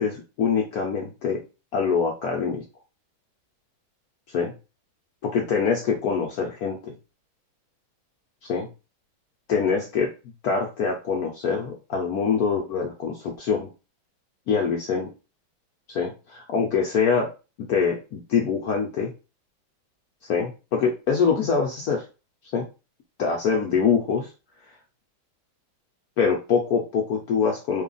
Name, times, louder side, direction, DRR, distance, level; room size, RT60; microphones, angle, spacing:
voice 1, 0.0-1.4 1.7-2.6 4.3-4.5 5.3-6.9 8.4-8.7 9.5-10.1 10.4-13.7 14.5-15.1 15.9-17.3 17.7-19.1 20.2-22.0 22.5-22.7 23.2-24.3 26.2-27.8, left 6 dB, 75° left, 0 dB, 0.8 m, -24 dB
3.2 x 2.3 x 3.8 m, 0.31 s
omnidirectional pair, 2.2 m